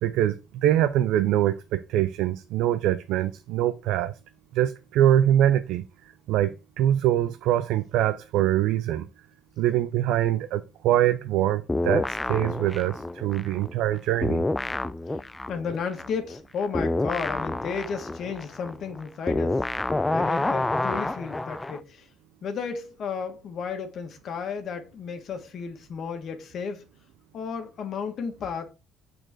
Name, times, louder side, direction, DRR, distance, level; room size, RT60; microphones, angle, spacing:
voice 1, 0.0-4.1 4.5-5.8 6.3-9.1 9.6-14.4, right 12 dB, 80° right, 0.5 m, -24 dB
sound 1, 11.7-13.9 14.2-21.8, left 2 dB, 15° left, 0.4 m, -28 dB
voice 2, 15.5-19.7 20.1-22.1 22.4-26.9 27.3-28.7, left 6 dB, 55° left, 1.6 m, -33 dB
6.3 x 4.3 x 4.6 m
cardioid pair, 100°, 0 cm